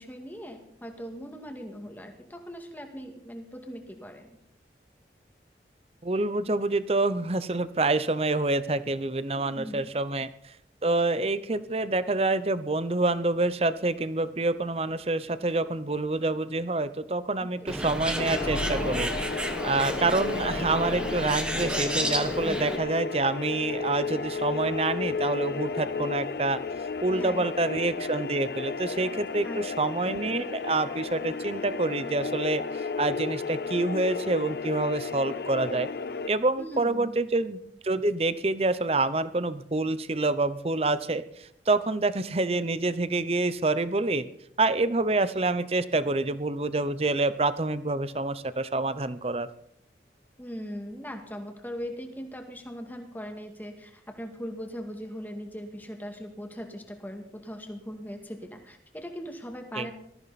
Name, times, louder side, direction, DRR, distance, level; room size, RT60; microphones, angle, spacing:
voice 1, 0.0-4.4 9.5-9.8 17.4-17.7 27.1-27.4 29.4-29.6 30.0-30.2 36.6-37.2 50.4-59.9, equal, 10° left, 4 dB, 2.1 m, -40 dB
voice 2, 6.0-10.3 10.8-19.1 19.6-26.6 27.0-32.6 33.0-35.9 36.3-37.6 37.8-41.2 41.7-44.3 44.6-49.5 59.7-59.9, right 2 dB, 35° right, 14 dB, 0.7 m, -27 dB
Bird, 17.7-22.8, equal, 5° right, 1.3 m, -31 dB
sound 1, 18.2-36.3, left 4 dB, 60° left, 0.6 m, -33 dB
19.5 x 14.0 x 4.2 m, 0.73 s
head